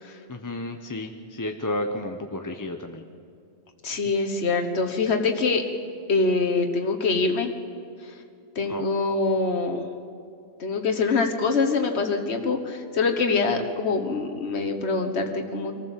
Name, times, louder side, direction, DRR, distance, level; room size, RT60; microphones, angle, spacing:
voice 1, 0.3-3.0 8.7-8.8, left 1 dB, 20° left, 5 dB, 0.8 m, -32 dB
voice 2, 3.8-5.6 6.1-7.5 8.0-8.2 8.5-9.9 10.6-15.8, left 4 dB, 90° left, 4 dB, 1.6 m, -24 dB
24.5 x 15.0 x 7.3 m, 2.5 s
omnidirectional pair, 1.1 m